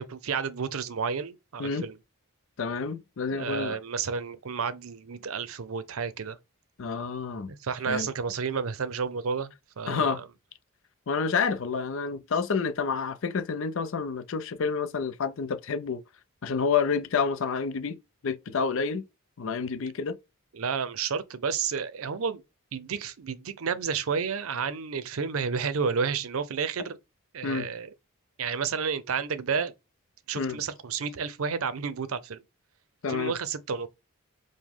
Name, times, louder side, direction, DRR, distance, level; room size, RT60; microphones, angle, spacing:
voice 1, 0.0-2.0 3.3-6.4 7.5-10.2 20.5-22.4 22.7-27.0 27.3-27.9 28.4-29.7 30.3-32.4 33.1-33.9, right 6 dB, 70° right, 0.5 m, -31 dB
voice 2, 2.6-3.8 6.8-7.5 7.9-8.1 9.9-10.2 11.1-16.0 16.4-18.0 18.2-19.0 19.4-20.2 27.4-27.7 30.4-30.6 33.0-33.4, left 5 dB, 60° left, 0.5 m, -29 dB
4.9 x 2.1 x 3.6 m
head